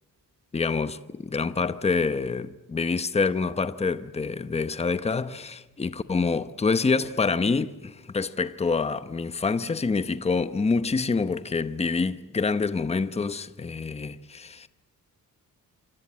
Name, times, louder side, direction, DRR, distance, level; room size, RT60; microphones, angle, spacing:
voice 1, 0.5-14.7, left 4 dB, 20° left, 0.9 m, -26 dB
27.0 x 25.5 x 8.6 m
wide cardioid pair, 135°, 34 cm